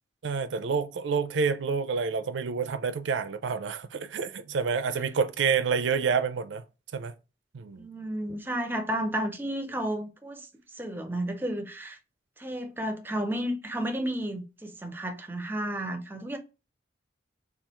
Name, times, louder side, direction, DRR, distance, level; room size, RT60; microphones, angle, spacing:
voice 1, 0.2-6.6 6.9-7.1 7.5-7.9, right 5 dB, 85° right, 0.4 m, -28 dB
voice 2, 7.8-10.5 10.8-12.0 12.4-16.4, right 1 dB, 10° right, 0.5 m, -32 dB
3.4 x 2.3 x 2.9 m
head